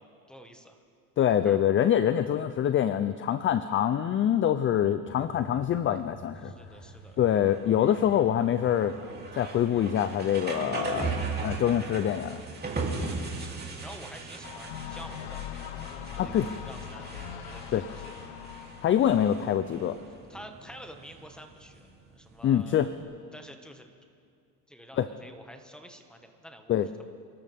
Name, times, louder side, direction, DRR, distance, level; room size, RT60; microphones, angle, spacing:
voice 1, 0.3-0.8 1.4-1.6 6.4-7.2 12.9-15.4 15.9-18.2 20.3-21.8 22.1-22.9 23.3-23.9 24.7-27.1, equal, ahead, 5 dB, 1.6 m, -49 dB
voice 2, 1.2-6.5 7.2-9.0 9.4-11.2 11.4-12.4 16.2-16.5 17.7-17.9 18.8-20.0 22.4-22.9 25.0-25.1 26.7-26.9, left 10 dB, 30° left, 13 dB, 0.5 m, -25 dB
sound 1, 5.1-23.0, right 3 dB, 20° right, 2.8 m, -39 dB
sound 2, 14.4-19.4, left 10 dB, 70° left, 1.1 m, -41 dB
28.5 x 13.0 x 3.6 m, 2.3 s
supercardioid pair, 105°, 43 cm